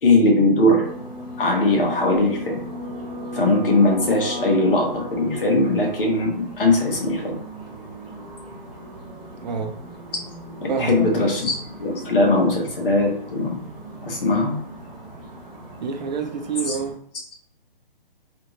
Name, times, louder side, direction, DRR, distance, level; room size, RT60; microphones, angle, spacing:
voice 1, 0.0-0.9 1.4-2.6 3.3-7.4 10.6-13.6 14.0-14.6 16.6-16.8, left 2 dB, 70° left, 1.4 m, -20 dB
sound 1, 0.8-16.9, equal, ahead, 0.5 m, -37 dB
voice 2, 9.4-9.8 10.7-11.1 15.8-17.0, right 6 dB, 50° right, 0.6 m, -27 dB
3.3 x 2.6 x 3.0 m
hypercardioid pair, 155°, 29 cm